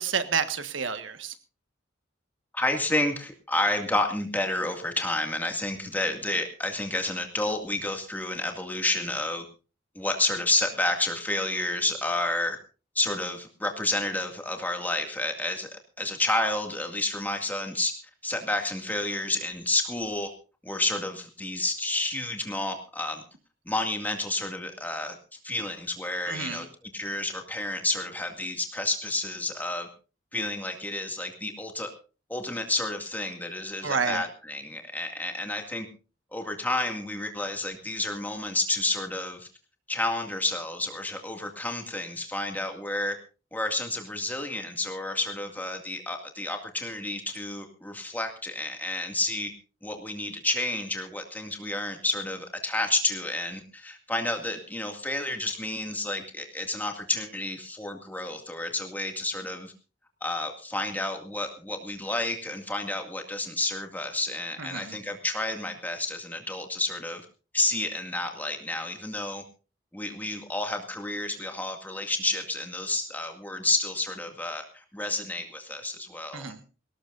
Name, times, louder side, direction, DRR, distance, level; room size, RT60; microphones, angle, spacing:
voice 1, 0.0-1.3 26.2-26.7 33.8-34.3 64.6-65.0 76.3-76.6, right 5 dB, 80° right, 9 dB, 1.5 m, -30 dB
voice 2, 2.5-9.4 10.0-12.6 13.0-17.9 18.2-20.3 20.6-23.2 23.7-29.9 30.3-31.9 32.3-35.9 36.3-39.5 39.9-43.2 43.5-49.5 49.8-59.7 60.2-67.3 67.5-69.4 69.9-76.5, left 2 dB, 10° left, 4 dB, 2.1 m, -30 dB
20.5 x 18.5 x 2.6 m, 0.34 s
head